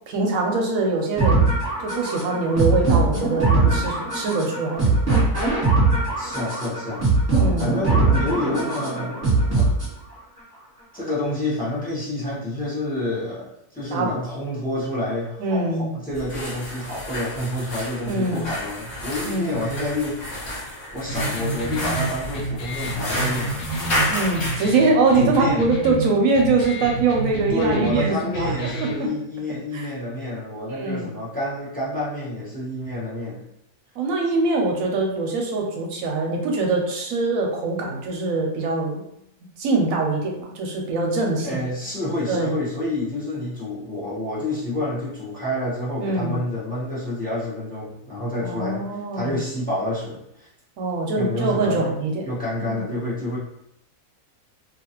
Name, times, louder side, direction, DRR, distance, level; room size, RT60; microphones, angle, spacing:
voice 1, 0.1-1.5 1.8-4.9 7.4-7.7 13.9-14.1 15.4-15.9 18.1-18.5 19.2-19.6 24.1-29.1 29.7-29.9 30.7-31.1 34.0-39.0 39.6-41.6 42.3-42.5 46.0-46.4 48.4-49.4 50.8-52.3 52.7-52.8, right 3 dB, 75° right, 1 dB, 0.9 m, -23 dB
sound 1, 1.2-10.2, right 3 dB, 10° right, 1.1 m, -21 dB
voice 2, 6.2-7.1 7.6-9.2 9.5-9.7 10.9-20.2 20.9-23.6 25.1-25.7 27.5-33.4 41.4-48.8 49.1-50.5 51.1-52.0 52.2-53.4, left 1 dB, 10° left, -8 dB, 0.7 m, -28 dB
sound 2, 16.1-24.7, left 1 dB, 55° left, 1.0 m, -30 dB
sound 3, 21.1-29.1, right 3 dB, 85° left, 1.1 m, -30 dB
2.7 x 2.4 x 2.8 m, 0.78 s
omnidirectional pair, 1.5 m